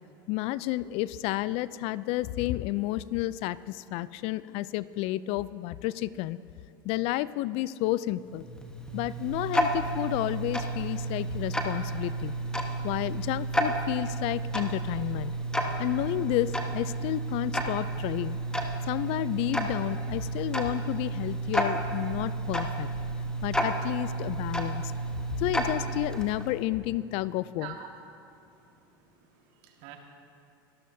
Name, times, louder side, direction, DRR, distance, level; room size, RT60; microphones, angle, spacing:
voice 1, 0.3-6.4 6.8-8.4 8.9-12.3 12.8-15.3 15.8-18.4 18.9-22.9 23.4-24.9 25.4-27.7, left 16 dB, 55° left, 18 dB, 0.4 m, -31 dB
Tick-tock, 8.2-26.6, right 1 dB, 5° left, 1.3 m, -31 dB
voice 2, 28.3-30.0, right 10 dB, 65° right, 3 dB, 1.8 m, -47 dB
23.5 x 12.5 x 2.7 m, 2.7 s
hypercardioid pair, 95°, 12 cm